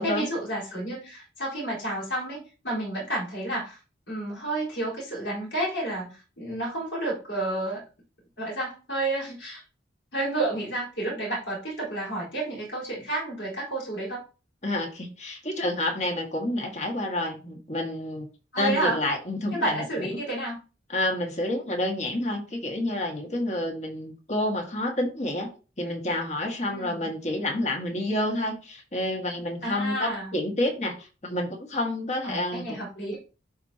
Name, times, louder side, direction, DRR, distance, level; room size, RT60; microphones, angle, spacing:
voice 1, 0.0-3.8 4.1-7.8 8.4-9.6 10.1-14.2 18.5-19.0 19.5-20.6 26.7-27.1 29.6-30.4 32.2-33.2, right 2 dB, 70° left, -5 dB, 4.4 m, -30 dB
voice 2, 14.6-18.3 18.6-20.1 20.9-25.5 25.8-32.8, left 1 dB, 40° left, 2 dB, 1.9 m, -29 dB
11.5 x 4.5 x 2.9 m, 0.34 s
head